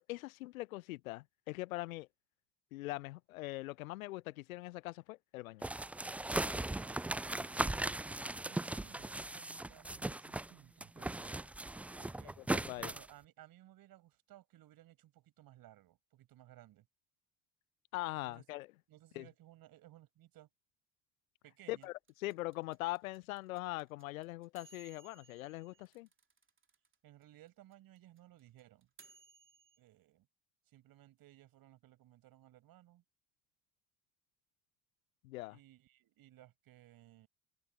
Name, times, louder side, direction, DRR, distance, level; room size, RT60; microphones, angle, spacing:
voice 1, 0.0-2.1 2.7-5.7 12.4-12.9 17.9-18.7 19.1-19.3 21.7-21.9 22.2-26.1 35.2-35.6, left 19 dB, 75° left, 0.7 m, -42 dB
sound 1, 5.6-10.5 10.8-13.1, right 2 dB, 5° right, 0.3 m, -38 dB
voice 2, 6.4-8.0 8.4-11.4 12.0-12.4 12.8-16.9 18.2-18.4 18.9-20.5 21.4-21.9 27.0-28.9 29.8-30.3 30.7-33.0 35.5-37.3, right 14 dB, 55° right, 6.3 m, -60 dB
sound 2, 21.8-26.9 27.2-27.3 27.5-29.8, right 4 dB, 30° right, 3.2 m, -62 dB
figure-of-eight pair, 55°, 42 cm